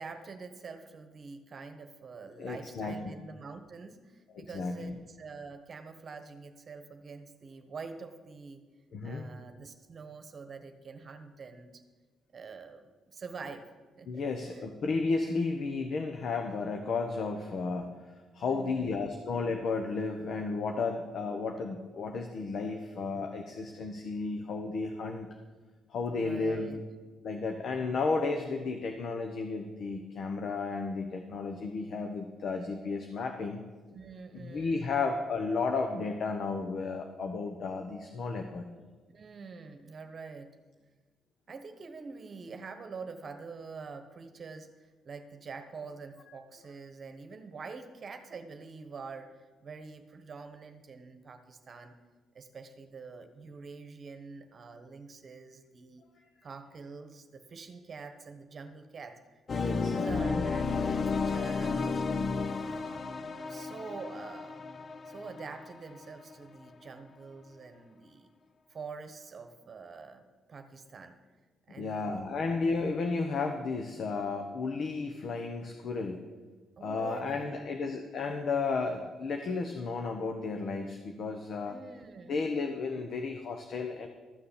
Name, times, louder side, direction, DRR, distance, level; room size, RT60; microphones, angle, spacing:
voice 1, 0.0-8.6 9.0-11.8 12.3-13.7 14.0-14.7 18.4-19.1 26.1-26.8 33.9-34.9 39.1-40.5 41.5-52.0 52.3-56.0 56.4-62.0 62.5-64.6 65.0-68.3 68.7-71.2 71.7-72.1 76.8-77.8 81.6-82.4, right 4 dB, 45° right, 7 dB, 1.2 m, -46 dB
voice 2, 2.4-3.1 4.3-4.9 8.9-9.3 14.1-17.9 18.3-25.3 25.9-26.8 27.2-33.6 34.3-38.7 59.6-60.5 71.8-76.2 76.8-81.8 82.3-84.1, left 4 dB, 60° left, 5 dB, 1.1 m, -33 dB
sound 1, 59.5-66.3, left 4 dB, 40° left, 0.6 m, -32 dB
13.5 x 6.8 x 7.3 m, 1.3 s
cardioid pair, 90°, 0 cm